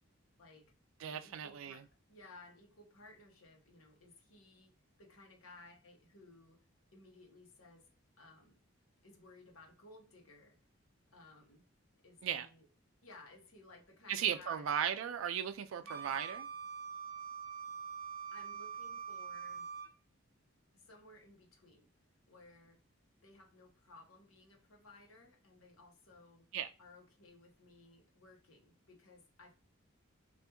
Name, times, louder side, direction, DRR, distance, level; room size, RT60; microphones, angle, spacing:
voice 1, 0.4-0.7 1.1-1.8 2.1-4.7 5.0-6.6 6.9-7.9 8.2-8.6 9.0-10.6 11.1-11.6 12.0-12.7 13.0-14.6 15.8-16.2 18.3-19.7 20.7-21.9 22.3-22.8 23.2-26.5 26.8-29.6, left 2 dB, 85° left, 1.0 m, -59 dB
voice 2, 1.0-1.7 12.2-12.5 14.1-16.5 26.5-26.7, right 9 dB, 75° right, 0.3 m, -36 dB
Wind instrument woodwind instrument, 15.9-19.9, right 6 dB, 55° right, 0.8 m, -44 dB
3.4 x 2.5 x 2.8 m
head